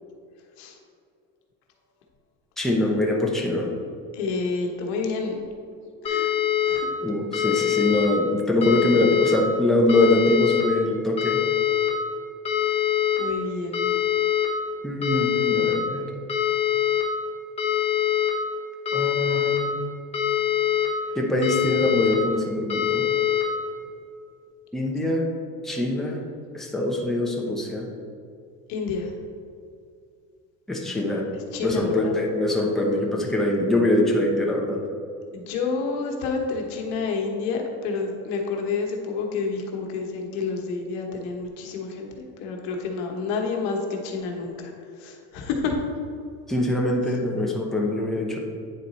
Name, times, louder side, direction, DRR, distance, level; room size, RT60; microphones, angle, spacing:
voice 1, 2.6-3.7 7.0-11.4 14.8-16.1 18.9-19.8 21.1-23.0 24.7-25.3 25.6-26.2 26.5-27.9 30.7-31.3 31.6-34.8 46.5-48.4, left 1 dB, ahead, -2 dB, 0.8 m, -23 dB
voice 2, 4.1-5.4 6.0-6.3 6.6-6.9 12.7-12.8 13.2-13.9 28.7-29.1 31.5-32.2 35.3-44.7 45.0-45.8, left 4 dB, 85° left, 1 dB, 1.2 m, -29 dB
sound 1, 6.0-6.8 7.3-8.1 8.6-9.3 9.9-10.6 11.2-11.9 12.4-13.2 13.7-14.5 15.0-15.7 16.3-17.0 17.6-18.3 18.8-19.6 20.1-20.9 21.4-22.1 22.7-23.4, left 11 dB, 20° left, 1.3 m, -23 dB
9.4 x 4.0 x 4.2 m, 2.4 s
cardioid pair, 135°, 29 cm